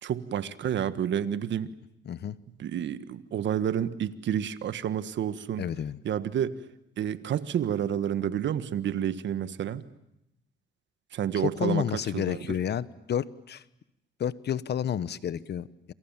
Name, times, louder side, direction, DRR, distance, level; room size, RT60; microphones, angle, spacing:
voice 1, 0.0-1.7 2.6-5.7 6.0-6.6 7.0-9.8 11.1-12.6, right 9 dB, 65° right, 13 dB, 1.6 m, -30 dB
voice 2, 2.1-2.4 5.6-6.0 11.3-13.6 14.2-15.9, left 9 dB, 55° left, 17 dB, 1.1 m, -30 dB
28.0 x 27.5 x 7.4 m, 0.84 s
cardioid pair, 90°, 20 cm